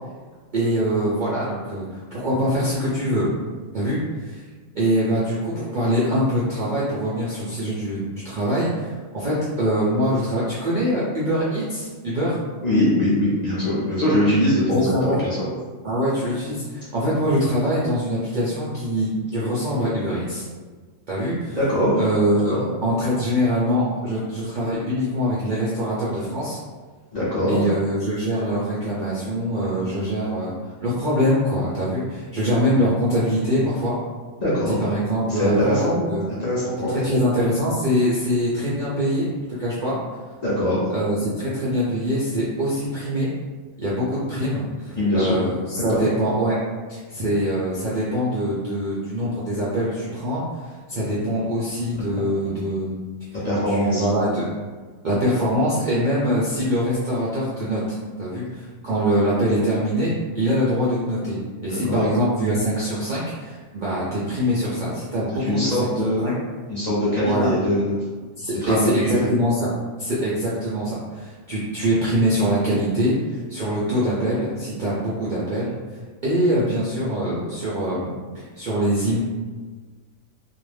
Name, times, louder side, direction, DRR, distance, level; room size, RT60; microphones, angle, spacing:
voice 1, 0.5-3.3 3.7-4.4 4.7-12.4 14.7-15.2 15.8-20.5 21.1-21.6 22.0-22.6 22.8-26.6 27.5-30.5 30.8-34.0 34.7-36.2 36.9-40.0 40.9-43.3 43.8-46.5 46.9-50.4 50.9-53.0 53.6-54.4 55.0-65.9 66.2-66.3 67.2-67.5 68.4-69.7 70.0-75.7 76.2-79.2, equal, 55° right, -8 dB, 0.5 m, -23 dB
voice 2, 12.6-15.4 21.5-22.0 22.5-22.6 27.1-27.7 34.4-34.8 35.3-36.0 36.3-37.2 40.4-40.9 45.0-45.4 45.9-46.0 53.4-54.1 61.7-62.1 65.4-66.3 66.7-68.0 68.6-69.1, left 1 dB, 40° left, -9 dB, 0.6 m, -22 dB
2.4 x 2.0 x 3.2 m, 1.4 s
omnidirectional pair, 1.4 m